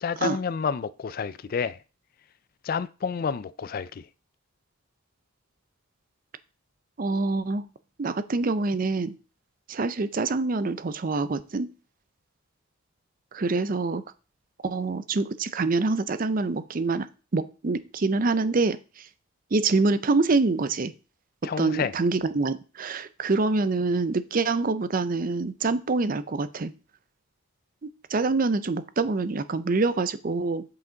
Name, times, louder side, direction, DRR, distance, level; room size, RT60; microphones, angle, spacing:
voice 1, 0.0-1.8 2.6-4.1 21.4-21.9, left 6 dB, 45° left, 0.3 m, -29 dB
voice 2, 7.0-7.6 8.0-9.1 9.7-11.7 13.3-14.0 14.6-17.1 17.3-18.8 19.5-20.9 21.6-26.7 28.1-30.6, right 3 dB, 40° right, 0.5 m, -25 dB
7.9 x 5.8 x 3.8 m
head